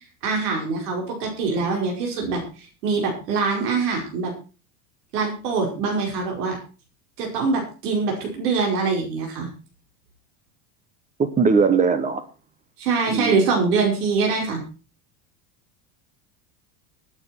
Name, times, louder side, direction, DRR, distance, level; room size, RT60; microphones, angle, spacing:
voice 1, 0.2-4.3 5.1-6.6 7.2-9.5 12.8-14.6, right 4 dB, 90° right, 1 dB, 5.3 m, -24 dB
voice 2, 11.2-12.2 13.1-13.5, right 5 dB, 15° right, 13 dB, 1.1 m, -20 dB
20.0 x 9.0 x 4.5 m, 0.34 s
supercardioid pair, 155°, 46 cm